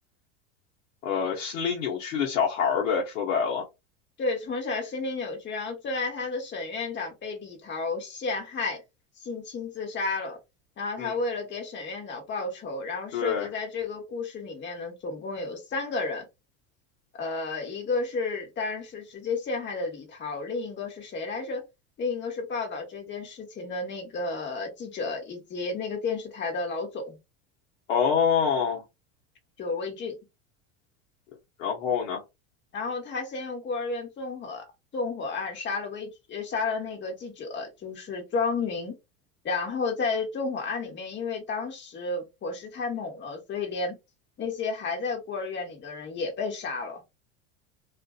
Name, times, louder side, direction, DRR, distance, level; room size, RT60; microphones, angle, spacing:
voice 1, 1.0-3.6 11.0-11.2 13.1-13.5 27.9-28.8 31.6-32.2 35.6-35.7, left 7 dB, 80° left, 0.9 m, -26 dB
voice 2, 4.2-8.8 9.2-10.4 10.8-16.2 17.2-21.6 22.0-27.2 29.6-30.1 32.7-34.6 34.9-38.9 39.4-43.9 44.4-47.0, left 4 dB, 30° left, 1.1 m, -32 dB
2.5 x 2.5 x 2.4 m
supercardioid pair, 105°, 38 cm